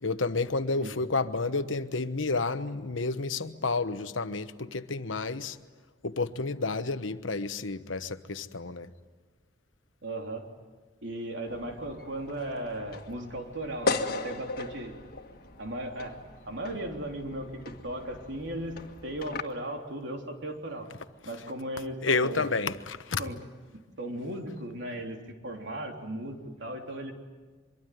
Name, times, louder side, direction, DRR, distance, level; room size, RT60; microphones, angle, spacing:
voice 1, 0.0-5.6 6.0-8.9 22.0-23.2, left 3 dB, 85° left, 1.1 m, -30 dB
voice 2, 10.0-10.4 11.0-14.9 15.6-16.1 16.5-20.9 21.2-22.5 23.2-23.4 24.0-27.1, right 1 dB, 70° right, 3.5 m, -36 dB
sound 1, 11.5-19.4, left 3 dB, 50° left, 1.7 m, -37 dB
25.0 x 23.0 x 9.4 m
head